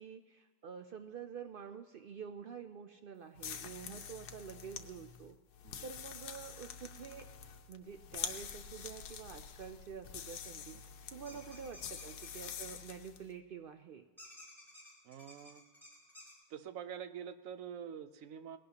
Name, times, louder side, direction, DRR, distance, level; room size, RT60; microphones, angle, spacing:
voice 1, 0.0-5.4 5.8-7.3 7.7-10.8 11.1-14.0, right 7 dB, 90° right, 8 dB, 0.4 m, -48 dB
sound 1, 3.4-13.3, left 7 dB, 90° left, 1.3 m, -46 dB
sound 2, 11.3-12.7 14.2-16.3, left 1 dB, ahead, 5.5 m, -55 dB
voice 2, 15.0-15.6 16.5-18.6, right 8 dB, 65° right, 11 dB, 0.9 m, -46 dB
19.5 x 17.0 x 2.9 m, 1.4 s
omnidirectional pair, 1.6 m